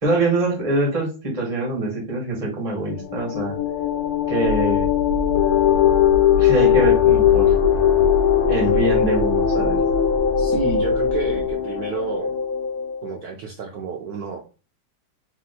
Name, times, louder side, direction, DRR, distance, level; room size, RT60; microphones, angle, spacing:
voice 1, 0.0-3.6 4.3-4.9 6.4-7.5 8.5-9.8, right 2 dB, 20° right, -1 dB, 1.2 m, -24 dB
sound 1, 2.9-13.1, left 9 dB, 80° left, 1.6 m, -20 dB
sound 2, 4.4-11.5, left 1 dB, 65° left, 1.2 m, -30 dB
voice 2, 10.4-12.3 13.0-14.4, right 5 dB, 70° right, 2 dB, 0.9 m, -30 dB
3.5 x 2.8 x 4.0 m, 0.34 s
omnidirectional pair, 2.2 m